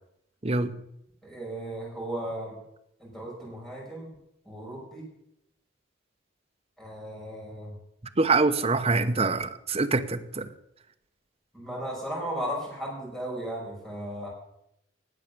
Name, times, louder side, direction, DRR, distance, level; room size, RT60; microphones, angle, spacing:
voice 1, 0.4-0.7 8.2-10.5, right 3 dB, 35° right, 0.9 m, -25 dB
voice 2, 1.2-2.6 3.0-4.1 4.4-5.0 6.8-7.7 11.5-14.3, right 1 dB, ahead, 6.1 m, -36 dB
19.0 x 7.5 x 6.9 m
head